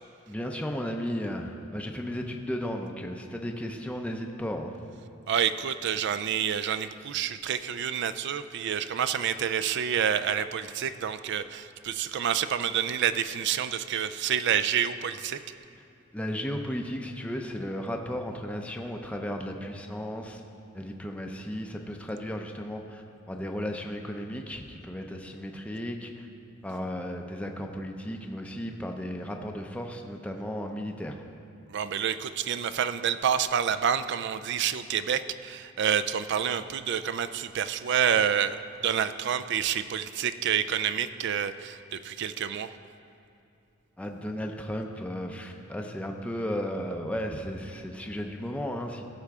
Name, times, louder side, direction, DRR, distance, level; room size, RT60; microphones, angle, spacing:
voice 1, 0.3-4.7 16.1-20.4 20.7-26.3 26.6-31.3 44.0-49.0, equal, 5° left, 2 dB, 0.5 m, -34 dB
voice 2, 5.3-15.4 31.7-42.7, right 8 dB, 60° right, 13 dB, 0.4 m, -28 dB
16.0 x 6.7 x 3.6 m, 2.6 s
head